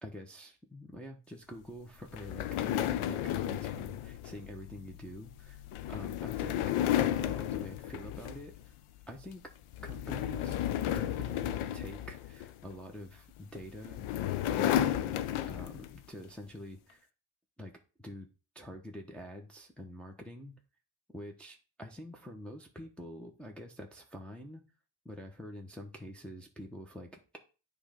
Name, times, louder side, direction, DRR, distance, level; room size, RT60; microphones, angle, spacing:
voice 1, 0.0-5.6 5.9-6.7 7.0-8.7 9.1-9.4 9.8-10.6 10.9-17.1 17.6-17.7 18.0-18.3 18.5-20.5 21.1-24.6 25.0-27.4, equal, ahead, 0 dB, 0.9 m, -46 dB
sound 1, 2.1-8.7 9.0-9.3 9.7-12.7 13.5-16.0, left 11 dB, 90° left, 0.7 m, -33 dB
9.7 x 3.3 x 5.1 m, 0.34 s
cardioid pair, 115°, 48 cm